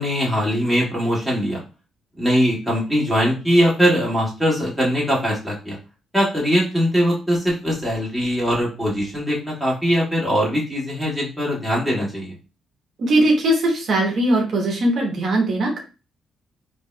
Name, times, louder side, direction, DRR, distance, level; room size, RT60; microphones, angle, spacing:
voice 1, 0.0-1.6 2.2-5.8 6.1-12.4, equal, ahead, -6 dB, 1.8 m, -21 dB
voice 2, 13.0-15.8, right 1 dB, 60° right, 0 dB, 0.9 m, -19 dB
4.0 x 2.7 x 2.2 m, 0.32 s
cardioid pair, 90°, 0 cm